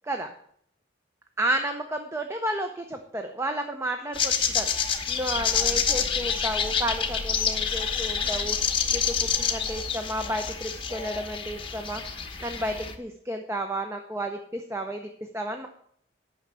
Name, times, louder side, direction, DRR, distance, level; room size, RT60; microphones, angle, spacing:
voice 1, 1.4-15.7, right 1 dB, 15° right, 5 dB, 0.6 m, -32 dB
sound 1, 4.1-13.0, left 7 dB, 25° left, 0.9 m, -28 dB
sound 2, 5.3-10.3 10.7-10.8, left 2 dB, 45° left, 0.5 m, -40 dB
9.4 x 6.0 x 6.7 m, 0.67 s
head